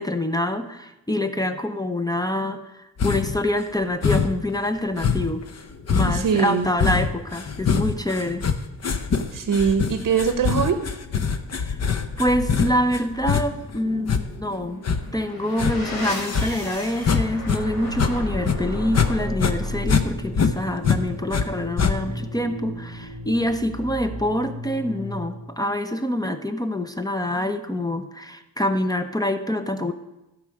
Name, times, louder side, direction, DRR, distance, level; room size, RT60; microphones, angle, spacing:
voice 1, 0.0-5.4 5.9-8.5 11.6-11.7 12.2-14.8 15.1-29.9, left 1 dB, 10° left, 8 dB, 0.6 m, -26 dB
sound 1, 3.0-3.4 4.0-4.5 5.0-17.6 17.9-19.1 19.4-21.4 21.8-22.3, left 6 dB, 45° left, 0.7 m, -24 dB
voice 2, 6.1-6.7 9.3-10.8, right 6 dB, 60° right, 8 dB, 0.8 m, -22 dB
sound 2, 14.9-25.6, equal, 65° left, 2.9 m, -33 dB
12.5 x 4.8 x 6.4 m, 0.95 s
cardioid pair, 105°, 36 cm